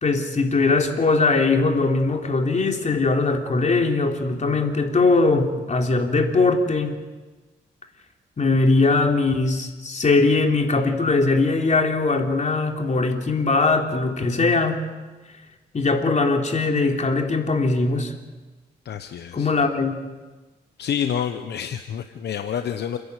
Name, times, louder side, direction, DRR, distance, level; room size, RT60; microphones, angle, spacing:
voice 1, 0.0-7.0 8.4-14.9 15.7-18.1 19.3-19.9, left 3 dB, 40° left, 3 dB, 3.3 m, -20 dB
voice 2, 18.8-19.5 20.8-23.0, left 8 dB, 70° left, 8 dB, 1.0 m, -28 dB
29.5 x 11.0 x 8.3 m, 1.2 s
cardioid pair, 65°, 18 cm